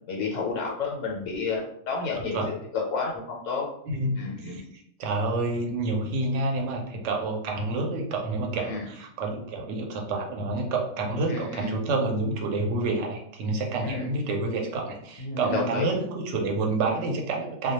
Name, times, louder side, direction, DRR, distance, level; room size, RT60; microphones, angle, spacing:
voice 1, 0.1-2.4 2.7-3.7 4.2-4.6 8.6-8.8 11.3-11.7 13.8-14.1 15.2-15.9, left 4 dB, 90° left, -2 dB, 0.9 m, -30 dB
voice 2, 3.9-17.7, right 2 dB, 75° right, 1 dB, 0.9 m, -28 dB
2.1 x 2.1 x 2.8 m, 0.71 s
omnidirectional pair, 1.3 m